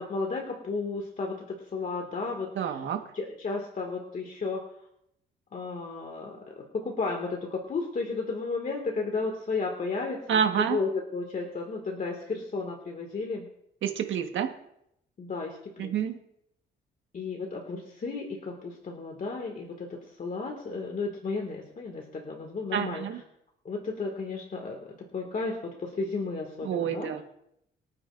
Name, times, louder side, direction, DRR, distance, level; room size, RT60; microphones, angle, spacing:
voice 1, 0.0-2.8 3.1-4.6 5.5-13.5 15.2-15.9 17.1-23.1 23.6-27.1, left 4 dB, 45° left, 1 dB, 2.2 m, -33 dB
voice 2, 2.5-3.0 10.3-10.8 13.8-14.5 15.8-16.2 22.7-23.2 26.6-27.2, right 8 dB, 75° right, 5 dB, 1.6 m, -28 dB
24.0 x 9.3 x 2.6 m, 0.77 s
cardioid pair, 90°, 20 cm